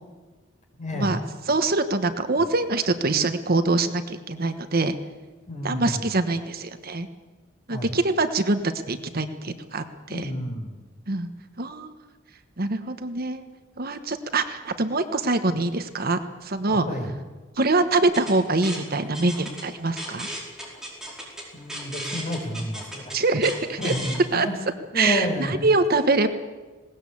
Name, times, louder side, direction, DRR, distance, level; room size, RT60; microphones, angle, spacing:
voice 1, 0.7-1.2 2.4-2.5 5.5-6.1 7.7-7.9 10.1-10.7 16.7-17.1 21.5-23.1 23.8-24.5 24.9-25.5, equal, 35° left, 2 dB, 4.7 m, -30 dB
voice 2, 1.5-4.9 5.6-7.1 7.7-10.3 11.1-11.3 11.6-12.0 12.6-13.4 13.8-16.9 17.6-20.3 23.1-23.9 24.3-24.5 24.9-26.3, right 3 dB, 45° right, 9 dB, 1.2 m, -24 dB
sound 1, 18.0-24.2, right 1 dB, 5° right, 4.9 m, -36 dB
20.0 x 18.5 x 8.5 m, 1.3 s
head